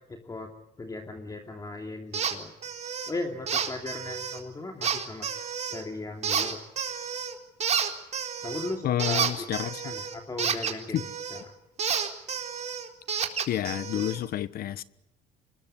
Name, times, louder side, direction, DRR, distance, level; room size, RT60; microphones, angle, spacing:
voice 1, 0.1-0.5 0.8-2.5 3.1-5.3 5.7-6.6 8.4-11.5, left 2 dB, 20° left, 2.8 m, -37 dB
sound 1, 2.1-2.4 2.6-3.1 3.5-4.4 4.8-5.8 6.2-7.3 7.6-11.4 11.8-14.2, right 7 dB, 40° right, 4.1 m, -30 dB
voice 2, 8.8-9.9 10.9-11.0 13.5-14.8, left 11 dB, 65° left, 1.2 m, -29 dB
25.0 x 21.0 x 9.9 m
cardioid pair, 110°, 17 cm